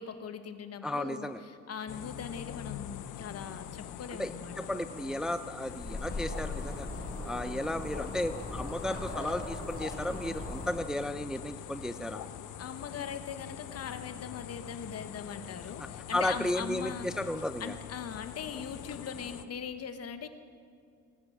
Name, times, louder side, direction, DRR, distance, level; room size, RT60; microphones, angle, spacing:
voice 1, 0.0-4.5 12.6-17.1 17.6-20.3, left 6 dB, 55° left, 9 dB, 1.2 m, -40 dB
voice 2, 0.8-1.4 4.2-6.9 7.2-12.2 16.1-17.7, left 1 dB, ahead, 11 dB, 0.5 m, -34 dB
sound 1, 1.9-19.5, left 11 dB, 80° left, 0.7 m, -44 dB
sound 2, 5.6-10.7, left 2 dB, 30° left, 4.6 m, -39 dB
18.5 x 9.7 x 6.3 m, 2.3 s
cardioid pair, 90°, 30 cm